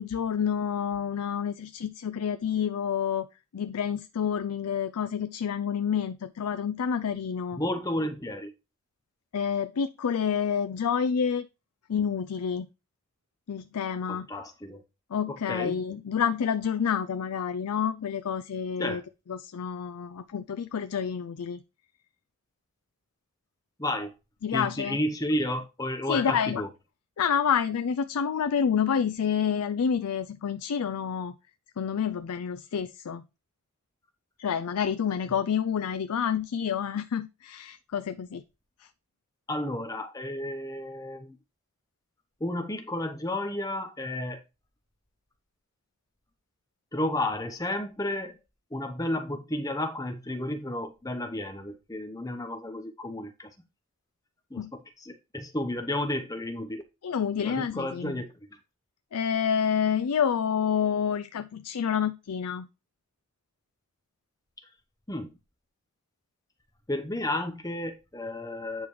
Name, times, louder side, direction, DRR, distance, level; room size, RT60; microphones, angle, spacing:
voice 1, 0.0-3.3 3.5-7.6 9.3-11.5 11.9-12.7 13.5-14.3 15.1-19.0 19.3-21.6 24.4-25.0 26.1-26.6 27.2-31.3 31.8-33.2 34.4-38.4 54.6-54.7 57.0-58.1 59.1-62.7, left 7 dB, 90° left, 0.4 m, -28 dB
voice 2, 7.5-8.5 14.1-14.8 15.3-15.8 18.8-19.1 23.8-24.1 24.5-26.7 39.5-41.4 42.4-44.4 46.9-48.4 48.7-53.5 54.5-56.8 57.4-58.3 65.1-65.3 66.9-68.9, left 1 dB, 15° left, 0.9 m, -32 dB
9.1 x 5.0 x 3.1 m
head